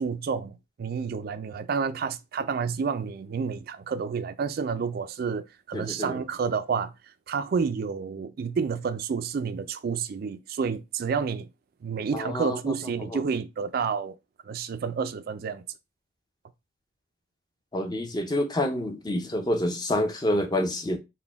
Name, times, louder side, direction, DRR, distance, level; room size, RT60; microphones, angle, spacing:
voice 1, 0.0-6.9 7.3-11.5 11.8-14.2 14.4-15.6, right 5 dB, 45° right, 0.3 m, -30 dB
voice 2, 5.7-6.2 12.1-12.7 13.1-13.2 17.7-21.0, left 1 dB, 20° left, 0.5 m, -28 dB
3.9 x 2.2 x 3.4 m
head